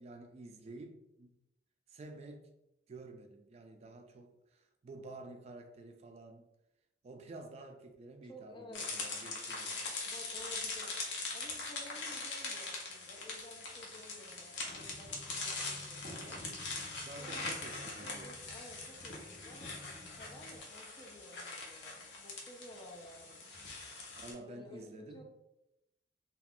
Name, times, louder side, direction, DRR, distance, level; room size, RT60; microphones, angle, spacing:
voice 1, 0.0-1.3 1.9-2.5 2.9-6.4 7.0-9.8 17.1-18.3 24.2-25.2, right 2 dB, 35° right, 4 dB, 0.3 m, -50 dB
voice 2, 8.2-8.8 10.0-10.9 11.3-16.4 17.1-17.6 18.0-19.7 20.2-23.5 24.4-25.2, left 1 dB, 30° left, 2 dB, 0.5 m, -54 dB
sound 1, 8.7-24.3, left 3 dB, 75° left, 0.7 m, -42 dB
sound 2, 14.7-20.6, left 1 dB, 45° left, 0.9 m, -52 dB
2.4 x 2.3 x 3.4 m, 0.87 s
head